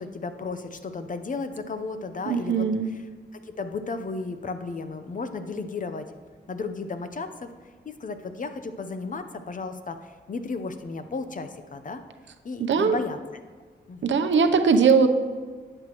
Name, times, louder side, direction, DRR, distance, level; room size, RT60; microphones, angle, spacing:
voice 1, 0.0-3.0 3.3-6.1 6.5-7.5 7.8-12.0 12.4-13.2 13.9-14.3, left 4 dB, 45° left, 9 dB, 0.7 m, -34 dB
voice 2, 2.3-2.9 12.6-13.0 14.0-15.1, right 5 dB, 75° right, 8 dB, 0.7 m, -20 dB
11.5 x 8.9 x 3.0 m, 1.5 s
wide cardioid pair, 100°, 19 cm